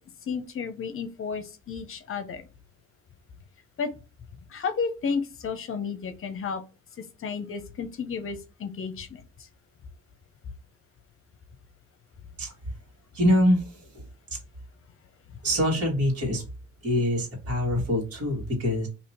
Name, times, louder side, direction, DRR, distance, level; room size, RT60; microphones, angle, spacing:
voice 1, 0.3-2.5 3.8-3.9 4.5-6.6 7.0-9.2, left 5 dB, 45° left, 9 dB, 0.8 m, -32 dB
voice 2, 13.1-13.6 15.4-16.4 16.8-18.9, equal, 50° right, -1 dB, 1.9 m, -24 dB
2.9 x 2.8 x 4.3 m, 0.30 s
cardioid pair, 90°, 30 cm